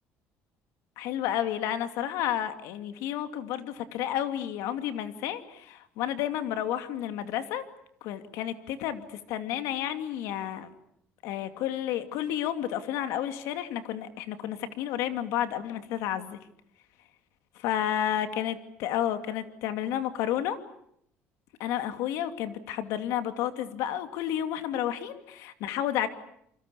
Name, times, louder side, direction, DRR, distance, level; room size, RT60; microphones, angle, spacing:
voice 1, 1.0-7.6 8.0-10.7 11.2-16.4 17.6-20.6 21.6-26.1, left 11 dB, 85° left, 9 dB, 2.6 m, -31 dB
28.5 x 25.0 x 7.0 m, 0.72 s
cardioid pair, 160°, 5 cm